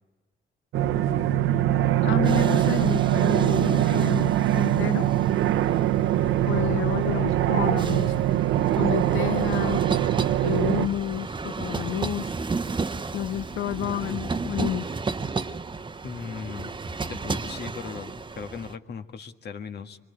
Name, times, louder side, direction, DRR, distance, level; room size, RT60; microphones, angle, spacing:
sound 1, 0.7-10.9, right 12 dB, 90° right, 0.9 m, -22 dB
sound 2, 1.8-18.8, right 4 dB, 25° right, 0.9 m, -34 dB
voice 1, 2.0-5.1 6.5-8.1 8.8-9.8 10.4-12.4 13.1-14.9, left 12 dB, 80° left, 0.8 m, -30 dB
voice 2, 16.0-16.7 17.1-20.0, left 6 dB, 55° left, 1.6 m, -38 dB
25.0 x 23.0 x 9.7 m
cardioid pair, 90°, 20 cm